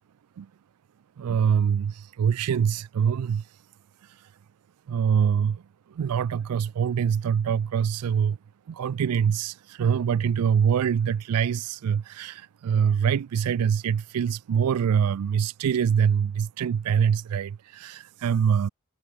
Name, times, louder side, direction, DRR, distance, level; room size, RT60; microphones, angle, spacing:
voice 1, 1.2-3.4 4.9-5.6 6.0-8.4 8.7-18.7, right 7 dB, 85° right, 0.4 m, -24 dB
head